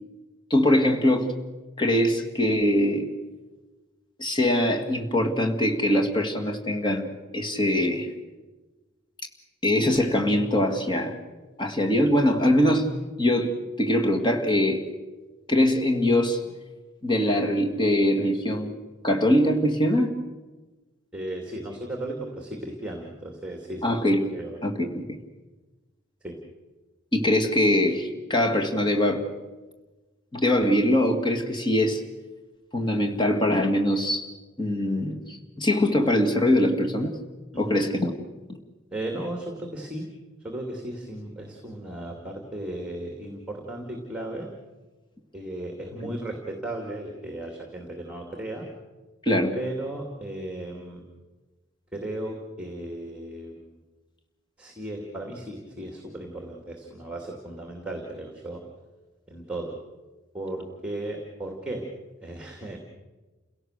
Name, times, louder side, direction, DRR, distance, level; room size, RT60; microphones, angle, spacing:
voice 1, 0.5-1.4 1.8-3.1 4.2-8.1 9.6-11.2 11.6-12.9 13.2-14.8 15.5-16.4 17.0-18.7 19.0-20.1 23.8-24.3 24.6-25.0 27.1-29.3 30.3-32.0 32.7-34.3 34.6-37.2 37.6-38.1 46.0-46.1 49.2-49.5, left 1 dB, 25° left, 2 dB, 2.1 m, -22 dB
voice 2, 21.1-24.0 24.3-24.6 26.2-26.4 37.5-37.8 38.9-40.1 40.4-44.5 45.3-48.7 49.5-51.0 51.9-53.8 54.6-58.6 59.3-59.7 60.3-61.8 62.2-62.8, right 1 dB, 5° right, 2 dB, 2.5 m, -35 dB
29.5 x 17.0 x 6.6 m, 1.2 s
head